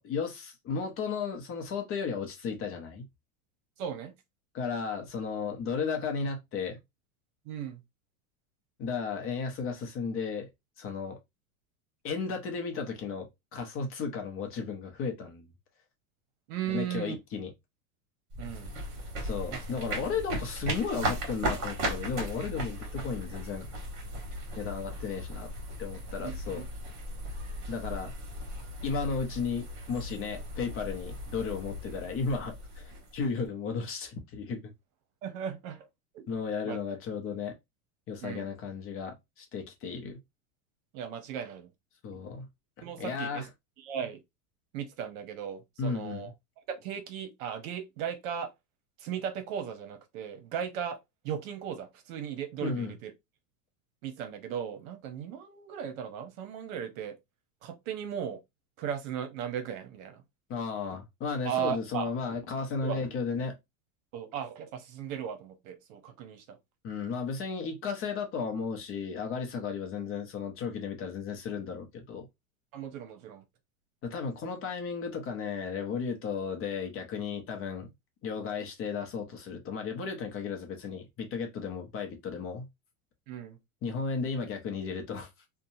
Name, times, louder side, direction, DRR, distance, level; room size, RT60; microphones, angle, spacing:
voice 1, 0.0-3.1 4.5-6.8 8.8-10.5 10.8-11.2 12.0-15.5 16.7-17.5 19.2-23.7 24.5-25.5 25.8-26.7 27.7-28.1 28.8-34.7 36.3-37.5 38.1-40.2 42.0-42.5 43.0-43.5 45.8-46.3 52.6-52.9 60.5-63.6 66.8-72.3 74.0-77.9 78.2-82.7 83.8-85.3, left 5 dB, 30° left, 0.7 m, -34 dB
voice 2, 3.8-4.1 7.4-7.8 16.5-17.2 18.4-18.7 19.5-19.6 26.2-26.6 35.2-35.9 36.1-36.2 36.6-36.8 38.2-38.5 40.9-41.7 42.1-42.2 42.8-43.5 43.8-44.2 44.7-46.3 46.7-48.5 49.0-51.0 51.2-53.1 54.0-57.2 57.6-58.4 58.8-60.2 61.4-62.1 62.8-63.0 64.1-66.6 72.7-73.4 83.3-83.6, right 8 dB, 70° right, 0.9 m, -37 dB
sound 1, 18.3-33.5, right 1 dB, 45° right, 1.4 m, -37 dB
2.8 x 2.2 x 2.6 m
supercardioid pair, 140°, 42 cm